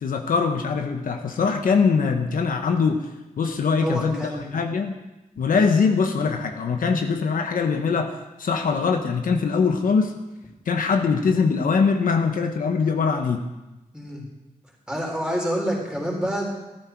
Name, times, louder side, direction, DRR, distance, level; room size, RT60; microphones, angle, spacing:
voice 1, 0.0-3.1 3.4-5.0 5.4-10.1 10.7-13.4, left 5 dB, 75° left, 5 dB, 1.1 m, -22 dB
voice 2, 3.8-4.6 13.9-14.2 14.9-16.5, equal, 5° right, -2 dB, 4.1 m, -27 dB
14.0 x 13.5 x 4.6 m, 1.0 s
wide cardioid pair, 145°, 14 cm